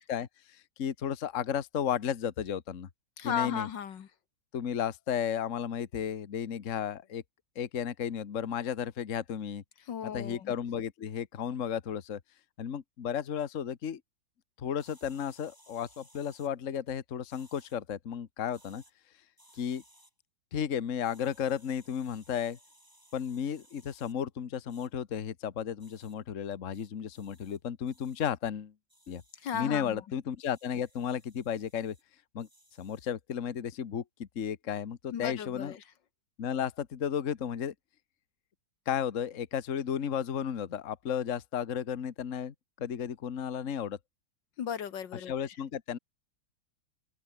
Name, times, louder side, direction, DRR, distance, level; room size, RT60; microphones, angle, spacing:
voice 1, 0.0-2.9 3.2-3.7 4.5-7.2 7.5-9.6 10.1-12.2 12.6-14.0 14.6-18.8 19.5-19.8 20.5-22.6 23.1-28.7 29.1-29.2 29.5-31.9 32.3-32.5 32.8-35.8 36.4-37.7 38.9-44.0 45.3-46.0, left 8 dB, 45° left, 1.5 m, -34 dB
voice 2, 3.2-4.1 9.8-10.5 29.4-30.0 35.1-35.8 44.6-45.3, left 8 dB, 70° left, 1.9 m, -35 dB
sound 1, 14.8-16.5 17.3-17.8 18.4-18.9 19.4-20.1 21.0-24.1 24.7-24.9 25.8-26.1 26.7-27.6 27.9-28.3 28.9-29.7 30.4-32.0 32.4-33.1, equal, 10° right, 6.9 m, -62 dB
omnidirectional pair, 2.1 m